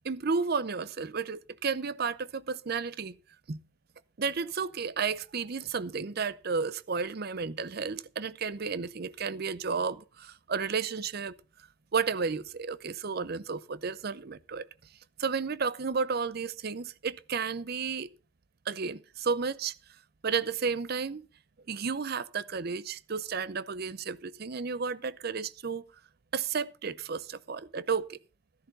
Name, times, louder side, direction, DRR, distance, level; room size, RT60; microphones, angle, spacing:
voice 1, 0.0-3.2 3.5-3.6 4.2-11.3 11.9-14.7 15.2-18.1 18.7-19.7 20.2-21.3 21.7-25.8 26.3-28.2, right 5 dB, 50° right, 0.6 m, -32 dB
13.0 x 11.5 x 4.0 m
head